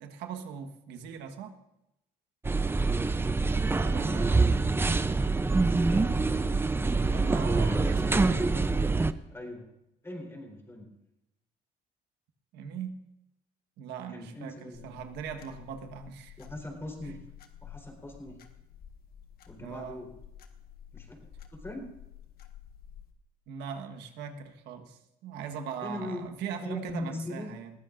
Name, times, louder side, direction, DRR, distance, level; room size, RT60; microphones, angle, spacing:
voice 1, 0.0-1.6 3.7-4.4 7.0-8.5 12.5-13.0 13.8-16.4 17.0-17.2 19.6-20.1 23.5-27.7, right 7 dB, 85° right, 5 dB, 1.4 m, -40 dB
sound 1, 2.4-9.1, right 3 dB, 15° right, 0.5 m, -25 dB
voice 2, 3.7-4.7 5.9-8.5 9.3-9.7 10.0-10.9 14.1-14.9 16.4-17.2 17.6-18.4 19.5-20.1 20.9-21.3 21.6-21.8 25.8-26.3 26.6-27.5, left 1 dB, 15° left, 1 dB, 3.9 m, -41 dB
sound 2, 14.7-23.1, left 9 dB, 65° left, 1.4 m, -51 dB
21.0 x 15.5 x 2.6 m, 0.87 s
cardioid pair, 110°, 17 cm